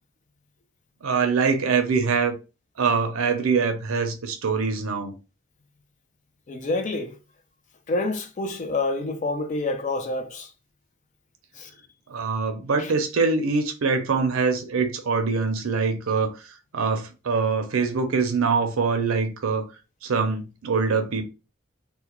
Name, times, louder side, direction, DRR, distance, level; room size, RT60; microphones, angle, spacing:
voice 1, 1.0-2.4 2.8-5.1 12.1-16.3 16.7-19.7 20.0-21.2, right 5 dB, 85° right, 0.5 m, -24 dB
voice 2, 6.5-7.2 7.9-10.5 11.5-11.7 12.8-12.9, left 2 dB, 35° left, 0.3 m, -28 dB
2.3 x 2.1 x 2.9 m
head